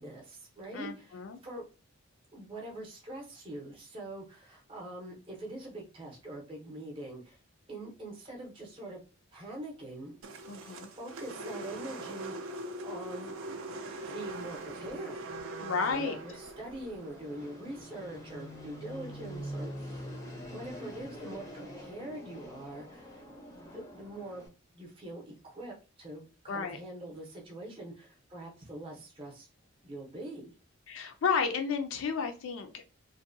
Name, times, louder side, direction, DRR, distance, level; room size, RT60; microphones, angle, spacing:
voice 1, 0.0-1.6 2.3-7.4 7.7-9.0 9.3-10.1 10.6-13.3 14.1-15.3 15.9-20.1 20.5-29.5 29.8-30.5, right 1 dB, 25° right, -1 dB, 0.6 m, -44 dB
voice 2, 0.7-1.4 10.5-10.9 15.6-16.2 26.5-26.8 30.9-32.8, left 5 dB, 70° left, 6 dB, 0.4 m, -32 dB
sound 1, 10.2-18.5, right 2 dB, 70° right, 0.4 m, -42 dB
Fixed-wing aircraft airplane, 14.5-24.5, equal, 15° left, 0.5 m, -46 dB
2.6 x 2.1 x 2.5 m, 0.33 s
head